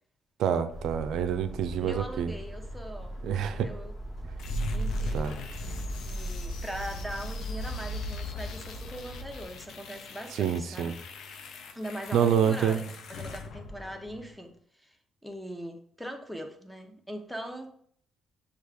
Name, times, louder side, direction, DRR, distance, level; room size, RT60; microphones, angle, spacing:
voice 1, 0.4-2.3 3.2-3.7 5.1-5.3 10.4-10.9 12.1-12.8, right 8 dB, 80° right, 10 dB, 0.4 m, -27 dB
sound 1, 0.7-9.5, right 1 dB, 50° left, 0.9 m, -41 dB
voice 2, 1.8-3.9 4.7-5.3 6.0-10.9 11.7-15.0 15.2-17.7, equal, ahead, 3 dB, 0.8 m, -41 dB
sound 2, 4.4-14.4, left 1 dB, 80° left, 0.5 m, -38 dB
6.3 x 2.4 x 3.5 m, 0.62 s
cardioid pair, 90°, 0 cm